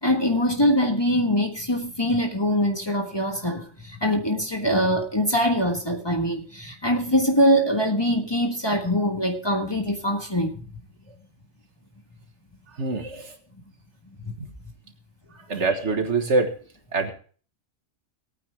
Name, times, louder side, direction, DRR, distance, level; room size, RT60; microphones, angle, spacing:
voice 1, 0.0-10.6 14.2-14.3 15.5-15.6, equal, 20° left, 1.5 m, -23 dB
voice 2, 12.8-13.3 14.4-14.5 15.5-16.5 16.9-17.1, right 3 dB, 60° right, 1.8 m, -24 dB
18.0 x 9.3 x 3.5 m
omnidirectional pair, 1.4 m